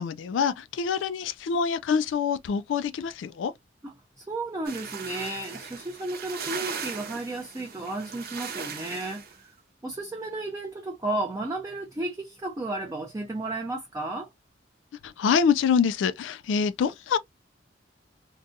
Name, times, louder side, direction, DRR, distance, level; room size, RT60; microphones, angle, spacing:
voice 1, 0.0-3.5 15.0-17.2, left 6 dB, 80° left, 0.3 m, -25 dB
voice 2, 3.8-9.5 9.8-14.3, right 2 dB, 20° right, 0.5 m, -33 dB
sound 1, 4.7-9.4, right 6 dB, 55° right, 0.7 m, -38 dB
2.6 x 2.2 x 2.5 m
head